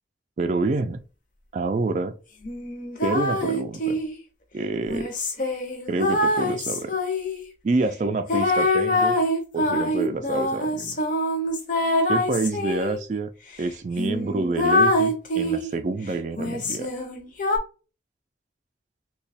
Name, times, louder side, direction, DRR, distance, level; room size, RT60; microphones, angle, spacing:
voice 1, 0.4-1.0 1.5-2.1 3.0-4.0 4.5-5.1 5.9-6.9 7.6-9.2 9.5-11.0 12.1-13.3 13.6-16.9, right 3 dB, 40° right, 0.3 m, -27 dB
sound 1, 2.4-4.2 4.9-7.4 8.3-13.0 13.5-13.6 14.0-15.7 16.4-17.6, left 1 dB, 45° left, 0.7 m, -24 dB
2.9 x 2.2 x 4.1 m
head